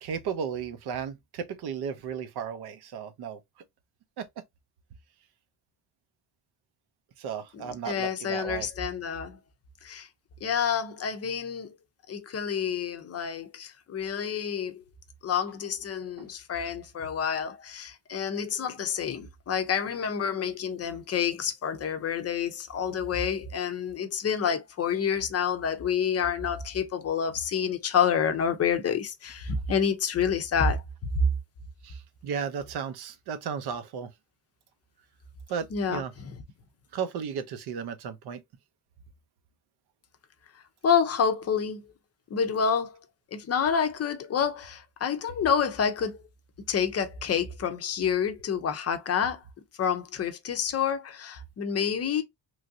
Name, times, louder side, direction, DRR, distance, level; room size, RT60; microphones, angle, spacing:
voice 1, 0.0-3.4 4.2-4.3 7.2-8.7 16.2-16.3 31.8-34.1 35.5-36.1 36.9-38.4, right 7 dB, 65° right, 0.6 m, -34 dB
voice 2, 7.5-9.4 9.8-10.1 10.4-11.7 12.1-14.8 15.2-30.8 31.1-31.3 35.7-36.3 40.8-41.8 42.3-43.0 43.3-46.2 46.7-49.4 49.8-52.2, left 7 dB, 35° left, 0.5 m, -28 dB
3.1 x 2.5 x 2.6 m
cardioid pair, 160°, 42 cm